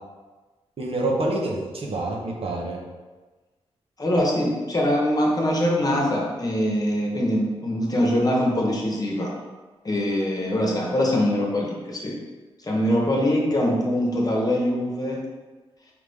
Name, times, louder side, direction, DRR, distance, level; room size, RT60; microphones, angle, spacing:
voice 1, 0.8-2.8, right 2 dB, 60° right, -1 dB, 0.9 m, -27 dB
voice 2, 4.0-9.4 9.8-12.2 12.7-15.2, left 1 dB, 35° left, -2 dB, 1.0 m, -23 dB
4.9 x 2.5 x 3.5 m, 1.3 s
cardioid pair, 65°, 11 cm